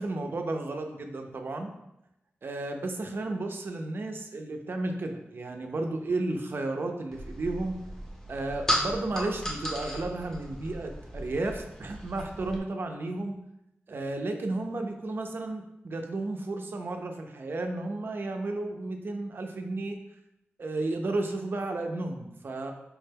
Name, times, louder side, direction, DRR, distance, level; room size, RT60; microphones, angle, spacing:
voice 1, 0.0-1.7 2.4-7.8 8.3-13.4 13.9-20.0 20.6-22.7, right 2 dB, 55° right, 4 dB, 0.4 m, -33 dB
sound 1, 7.1-12.6, equal, 10° left, 0.6 m, -35 dB
4.6 x 2.1 x 3.3 m, 0.87 s
wide cardioid pair, 100°, 4 cm